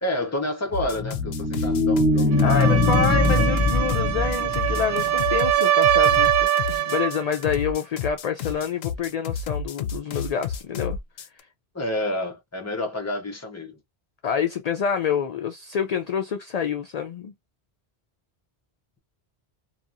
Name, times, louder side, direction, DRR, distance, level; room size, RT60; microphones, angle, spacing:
voice 1, 0.0-2.7 3.0-3.1 3.3-3.4 11.7-13.8, left 1 dB, 15° left, 0.7 m, -29 dB
sound 1, 0.7-11.4, left 6 dB, 75° left, 0.8 m, -31 dB
sound 2, 0.8-5.3, left 2 dB, 15° right, 1.0 m, -22 dB
sound 3, 2.3-7.2, right 12 dB, 75° right, 0.8 m, -23 dB
voice 2, 2.4-11.0 14.2-17.3, left 7 dB, 55° left, 0.4 m, -27 dB
2.8 x 2.4 x 2.5 m
omnidirectional pair, 1.1 m